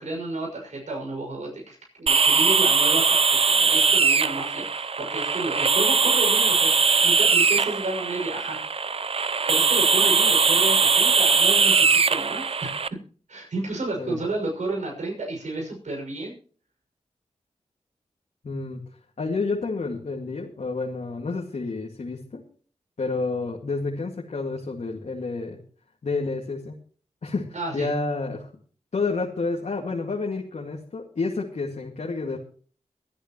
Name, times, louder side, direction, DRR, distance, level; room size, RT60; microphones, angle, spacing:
voice 1, 0.0-8.6 9.5-12.7 13.3-16.3 27.5-27.9, right 2 dB, 75° right, -1 dB, 6.2 m, -31 dB
sound 1, 2.1-12.9, right 5 dB, 50° right, 0.6 m, -20 dB
voice 2, 18.4-18.8 19.2-22.4 23.0-25.6 26.0-26.8 27.2-28.5 28.9-32.4, left 3 dB, 70° left, 0 dB, 2.1 m, -29 dB
23.5 x 10.0 x 3.1 m, 0.43 s
cardioid pair, 55°, 12 cm